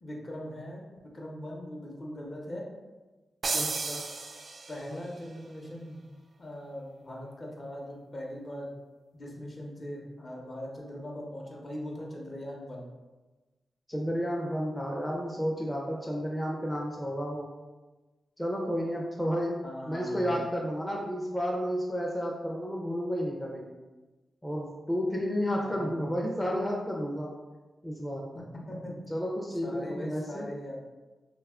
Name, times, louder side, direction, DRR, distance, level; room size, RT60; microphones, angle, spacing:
voice 1, 0.0-2.7 3.5-3.6 4.7-6.0 6.4-8.7 9.1-12.8 19.6-20.4 25.6-26.0 28.3-29.0 29.6-30.8, equal, 40° left, -1 dB, 0.7 m, -40 dB
sound 1, 3.4-5.1, right 3 dB, 55° right, 0.3 m, -33 dB
voice 2, 3.6-4.0 13.9-17.5 18.4-19.5 19.9-23.7 24.4-27.3 27.8-28.2 29.1-30.4, equal, 10° left, -2 dB, 0.4 m, -31 dB
2.7 x 2.3 x 3.5 m, 1.2 s
cardioid pair, 80°, 0 cm